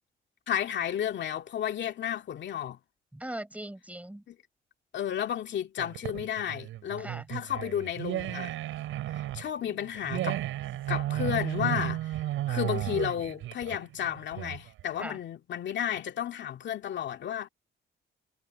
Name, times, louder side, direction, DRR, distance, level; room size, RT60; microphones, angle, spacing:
voice 1, 0.5-2.8 4.3-4.4 4.9-8.5 9.1-10.4 10.9-17.5, left 10 dB, 65° left, 2.2 m, -33 dB
voice 2, 3.1-4.2 7.0-7.2 15.0-15.2, right 1 dB, 5° right, 6.6 m, -39 dB
sound 1, 5.8-14.8, right 14 dB, 90° right, 7.9 m, -33 dB
cardioid pair, 90°, 20 cm